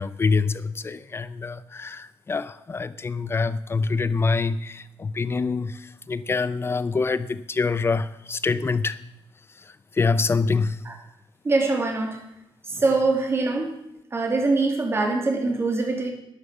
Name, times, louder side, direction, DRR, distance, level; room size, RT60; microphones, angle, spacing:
voice 1, 0.0-9.0 9.9-10.8, left 4 dB, 25° left, 15 dB, 0.7 m, -25 dB
voice 2, 11.4-12.2 12.7-13.8 14.1-16.1, right 3 dB, 30° right, 3 dB, 2.7 m, -23 dB
12.5 x 10.5 x 6.3 m, 0.82 s
cardioid pair, 115°, 9 cm